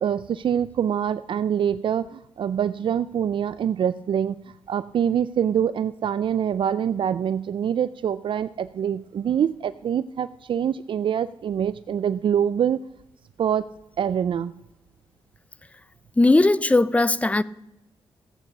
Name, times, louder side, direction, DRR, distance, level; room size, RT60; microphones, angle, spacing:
voice 1, 0.0-4.4 4.7-12.8 13.4-13.7 14.0-14.5, right 8 dB, 60° right, 0.4 m, -25 dB
voice 2, 16.2-17.4, left 2 dB, 15° left, 0.5 m, -18 dB
14.0 x 8.7 x 6.0 m
cardioid pair, 100°, 10 cm